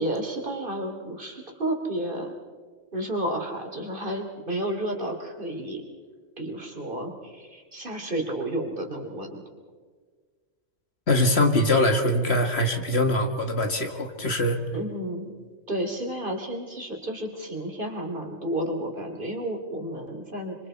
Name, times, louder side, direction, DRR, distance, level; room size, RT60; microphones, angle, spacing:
voice 1, 0.0-2.3 2.9-5.8 6.4-9.4 14.7-15.3 15.7-20.6, right 1 dB, 40° right, 2 dB, 3.2 m, -31 dB
voice 2, 11.1-14.6, left 1 dB, 55° left, 5 dB, 2.0 m, -23 dB
26.0 x 26.0 x 4.5 m, 1.5 s
omnidirectional pair, 1.3 m